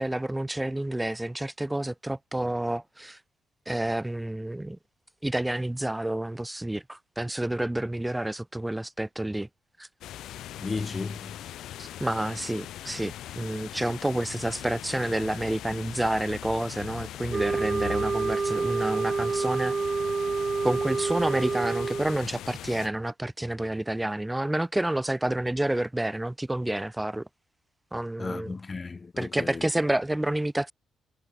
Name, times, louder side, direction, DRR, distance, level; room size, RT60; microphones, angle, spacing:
voice 1, 0.0-3.2 3.7-4.8 5.2-9.5 9.8-9.9 11.8-19.7 20.6-27.3 27.9-28.6 29.2-30.7, right 1 dB, 10° right, 1.3 m, -29 dB
sound 1, 10.0-22.9, left 12 dB, 80° left, 2.0 m, -40 dB
voice 2, 10.6-11.3 28.2-29.6, left 4 dB, 30° left, 1.5 m, -34 dB
sound 2, 17.3-22.2, right 4 dB, 30° right, 2.0 m, -28 dB
cardioid pair, 90°, 0 cm